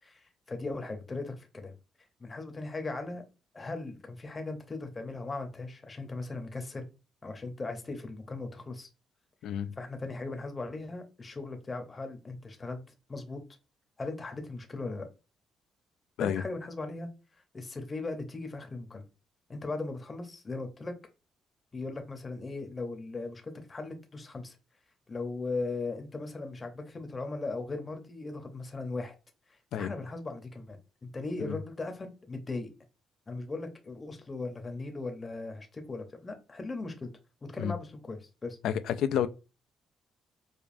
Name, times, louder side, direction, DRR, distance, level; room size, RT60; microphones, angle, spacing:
voice 1, 0.0-1.7 2.2-3.2 3.5-6.9 7.2-8.9 9.8-12.8 13.1-13.4 14.0-15.1 16.2-17.1 17.5-19.1 19.5-20.9 21.7-24.6 25.1-29.1 29.5-32.7 33.3-37.1 37.4-38.6, left 3 dB, 30° left, 0.7 m, -38 dB
voice 2, 9.4-9.7 16.2-16.4 29.7-29.9 31.4-31.6 37.6-37.7 38.6-39.3, left 9 dB, 80° left, 0.3 m, -30 dB
5.0 x 2.3 x 2.5 m
cardioid pair, 90°, 0 cm